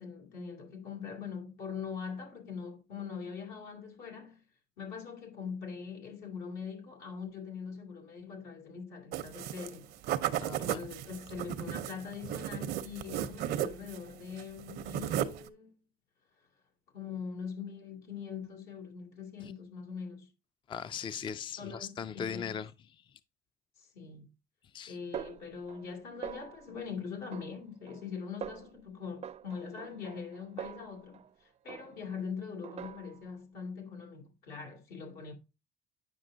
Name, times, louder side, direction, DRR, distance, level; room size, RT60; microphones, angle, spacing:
voice 1, 0.0-4.4 4.8-9.9 10.6-15.8 16.9-20.3 21.6-22.5 23.8-24.3 24.9-35.3, left 6 dB, 80° left, 2.7 m, -42 dB
sound 1, 9.1-9.7 10.0-14.1 14.3-15.5, right 11 dB, 80° right, 0.7 m, -35 dB
voice 2, 10.4-10.8 19.4-19.5 20.7-23.0 24.7-25.0, left 7 dB, 30° left, 0.4 m, -39 dB
Snare drum, 25.1-26.0 26.2-26.8 27.3-28.1 28.4-28.8 29.2-31.3 31.7-32.2 32.6-33.3, right 9 dB, 40° right, 0.4 m, -44 dB
9.0 x 5.9 x 2.7 m
cardioid pair, 110°, 17 cm